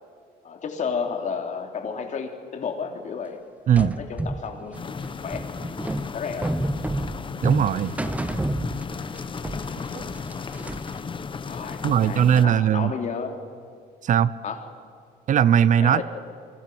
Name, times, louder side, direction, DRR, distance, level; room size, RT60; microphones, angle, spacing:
voice 1, 0.4-3.4 3.8-4.8 5.2-5.5 6.1-6.6 11.4-13.4 14.4-14.7 15.8-16.0, left 6 dB, 45° left, 4 dB, 3.0 m, -32 dB
sound 1, 3.8-9.2 9.4-11.0, right 1 dB, 10° right, 1.0 m, -29 dB
sound 2, 4.7-12.5, left 5 dB, 30° left, 1.1 m, -35 dB
voice 2, 7.4-7.9 9.9-10.0 11.8-12.9 14.0-14.3 15.3-16.0, right 9 dB, 50° right, 17 dB, 0.7 m, -19 dB
28.5 x 24.5 x 6.1 m, 2.3 s
cardioid pair, 110°, 17 cm